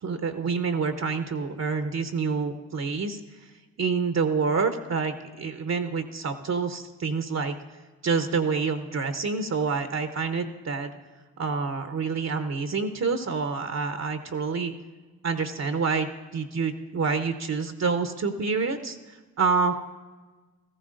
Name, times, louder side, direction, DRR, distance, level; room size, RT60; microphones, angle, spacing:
voice 1, 0.0-3.5 3.8-7.6 8.0-10.9 11.4-14.7 15.2-19.7, right 4 dB, 40° right, 8 dB, 0.8 m, -27 dB
14.5 x 14.0 x 2.6 m, 1.3 s
supercardioid pair, 50°, 41 cm